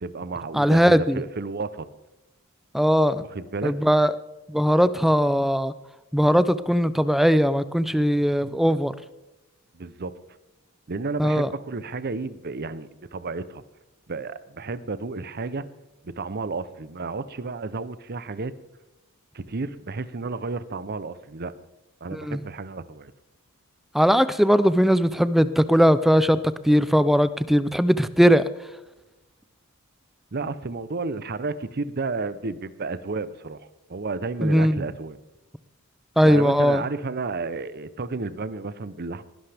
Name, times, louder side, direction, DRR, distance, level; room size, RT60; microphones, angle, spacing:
voice 1, 0.0-1.9 3.2-3.7 9.7-10.1 10.9-13.6 14.1-15.6 16.0-18.5 19.3-21.5 22.0-23.1 30.3-35.2 36.2-39.2, right 3 dB, 45° right, 15 dB, 0.7 m, -32 dB
voice 2, 0.5-1.2 2.7-3.2 3.6-4.1 4.5-5.7 6.1-8.9 11.2-11.5 22.1-22.4 23.9-26.4 26.6-28.4 34.4-34.9 36.2-36.8, equal, ahead, 15 dB, 0.4 m, -19 dB
19.5 x 11.5 x 3.5 m, 1.0 s
head